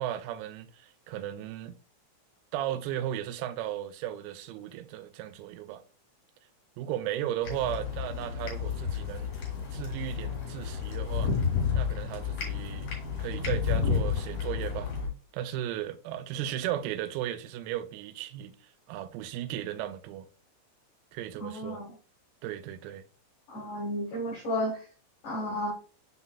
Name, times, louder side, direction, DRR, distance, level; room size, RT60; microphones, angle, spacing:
voice 1, 0.0-1.8 2.5-5.8 6.8-9.3 9.7-11.3 11.7-12.9 13.2-14.9 15.3-18.6 18.9-20.3 21.1-21.8 22.4-23.1, right 12 dB, 90° right, 3.4 m, -35 dB
sound 1, 7.4-15.1, left 6 dB, 50° left, 3.5 m, -31 dB
voice 2, 21.4-21.9 23.5-24.9 25.2-25.7, equal, 80° left, 1.8 m, -33 dB
10.5 x 4.0 x 2.3 m
omnidirectional pair, 5.9 m